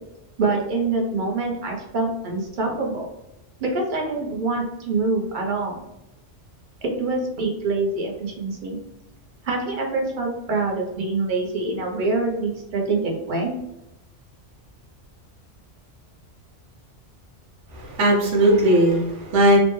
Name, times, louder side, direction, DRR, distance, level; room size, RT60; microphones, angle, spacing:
voice 1, 0.4-3.1 3.6-5.8 6.8-8.8 9.4-13.5, right 3 dB, 50° right, 1 dB, 0.7 m, -25 dB
voice 2, 17.7-19.6, right 1 dB, 90° right, 0 dB, 1.1 m, -18 dB
3.1 x 2.1 x 3.0 m, 0.90 s
omnidirectional pair, 1.2 m